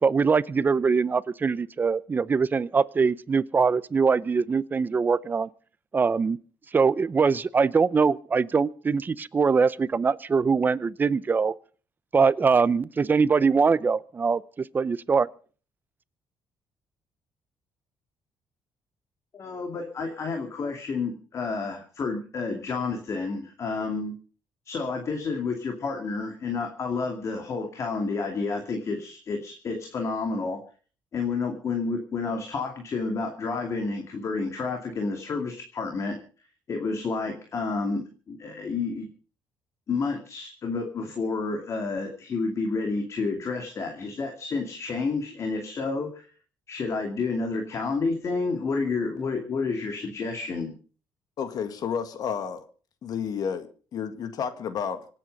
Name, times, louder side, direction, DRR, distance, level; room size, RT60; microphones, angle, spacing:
voice 1, 0.0-5.5 5.9-6.4 6.7-11.5 12.1-15.3, right 5 dB, 25° right, 0.6 m, -23 dB
voice 2, 19.3-24.2 24.7-30.6 31.1-36.2 36.7-39.1 39.9-46.3 46.7-50.7, left 4 dB, 40° left, 2.5 m, -30 dB
voice 3, 51.4-52.7 53.0-55.1, left 7 dB, 55° left, 1.8 m, -31 dB
25.5 x 8.9 x 5.3 m
cardioid pair, 155°, 8 cm